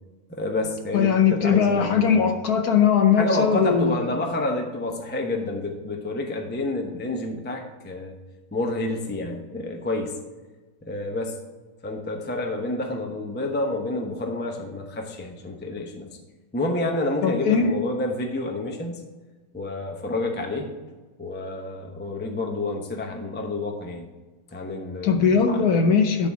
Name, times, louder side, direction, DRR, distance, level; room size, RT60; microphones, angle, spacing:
voice 1, 0.3-2.3 3.2-8.1 8.5-10.1 10.9-11.4 11.8-16.1 16.5-18.9 19.5-20.7 21.2-24.1 24.5-25.7, left 2 dB, 10° left, 2 dB, 0.4 m, -29 dB
voice 2, 0.9-4.1 17.2-17.7 25.0-26.3, left 6 dB, 60° left, 5 dB, 1.2 m, -20 dB
11.5 x 4.0 x 6.0 m, 1.2 s
omnidirectional pair, 2.1 m